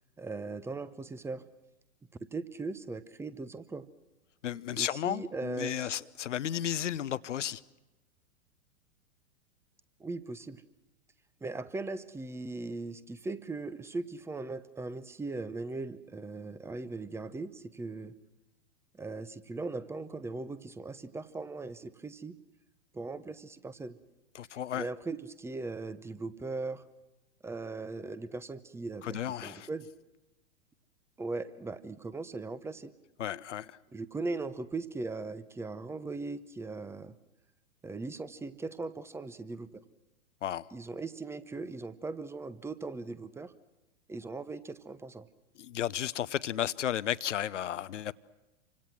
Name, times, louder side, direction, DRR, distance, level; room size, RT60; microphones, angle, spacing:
voice 1, 0.2-1.5 2.3-3.9 4.7-5.9 10.0-10.6 11.4-18.1 19.0-22.3 22.9-24.0 24.7-26.8 27.4-29.9 31.2-32.9 33.9-37.2 37.8-39.8 40.7-43.5 44.1-45.3, right 3 dB, 5° right, 0.8 m, -39 dB
voice 2, 4.4-7.6 24.3-24.9 29.0-29.7 33.2-33.7 40.4-40.6 45.6-48.1, left 10 dB, 70° left, 0.9 m, -33 dB
28.0 x 25.0 x 6.1 m
figure-of-eight pair, 105°, 37 cm